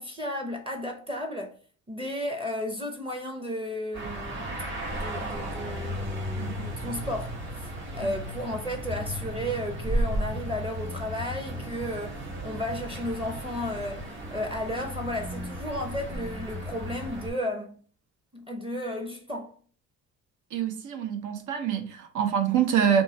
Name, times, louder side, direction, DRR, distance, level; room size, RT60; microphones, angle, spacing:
voice 1, 0.0-1.5 1.9-4.6 4.9-14.0 14.3-17.8 18.3-19.5, left 1 dB, 20° right, 0.7 m, -34 dB
sound 1, 3.9-17.3, equal, 40° right, 1.6 m, -34 dB
voice 2, 6.3-6.7 20.5-23.0, right 8 dB, 80° right, 0.7 m, -26 dB
3.0 x 2.3 x 4.1 m
cardioid pair, 90°, 30 cm